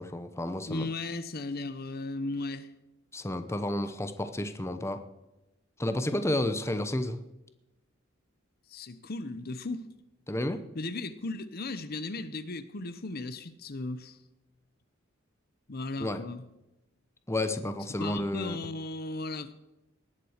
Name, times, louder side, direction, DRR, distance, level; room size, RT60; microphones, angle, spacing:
voice 1, 0.0-0.9 3.1-5.0 5.8-7.2 10.3-10.6 16.0-16.2 17.3-18.6, left 1 dB, 15° left, 0.8 m, -31 dB
voice 2, 0.7-2.7 8.7-9.9 10.7-14.2 15.7-16.4 18.0-19.5, left 2 dB, 50° left, 0.8 m, -36 dB
19.0 x 7.6 x 6.5 m
head